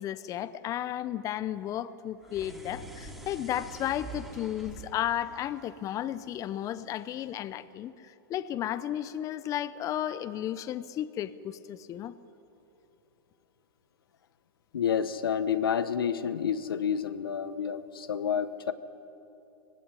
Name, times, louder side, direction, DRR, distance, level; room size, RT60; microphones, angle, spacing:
voice 1, 0.0-12.1, left 11 dB, 30° left, 14 dB, 0.7 m, -34 dB
sound 1, 2.2-6.6, right 2 dB, 5° right, 3.0 m, -46 dB
voice 2, 14.7-18.7, left 8 dB, 85° left, 12 dB, 1.1 m, -29 dB
20.0 x 16.5 x 9.8 m, 3.0 s
hypercardioid pair, 125°, 12 cm